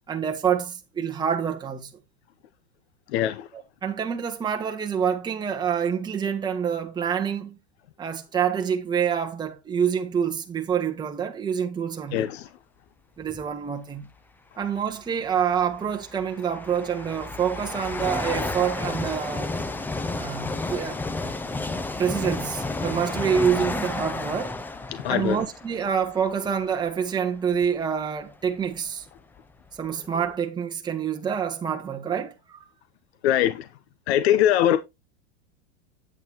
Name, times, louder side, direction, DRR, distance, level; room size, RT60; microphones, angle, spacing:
voice 1, 0.1-1.9 3.5-7.6 8.0-12.3 13.2-14.1 14.6-19.5 20.1-21.0 22.0-24.5 25.1-29.0 29.8-32.6, right 7 dB, 15° right, 1.2 m, -27 dB
voice 2, 12.1-12.4 24.9-25.4 33.2-33.5 34.1-34.8, left 11 dB, 75° left, 0.9 m, -21 dB
sound 1, 13.2-13.5 14.6-14.7 15.5-26.9 27.5-27.7 28.5-28.6 28.8-30.4, left 3 dB, 5° left, 0.5 m, -32 dB
9.0 x 8.6 x 2.9 m
supercardioid pair, 145°, 32 cm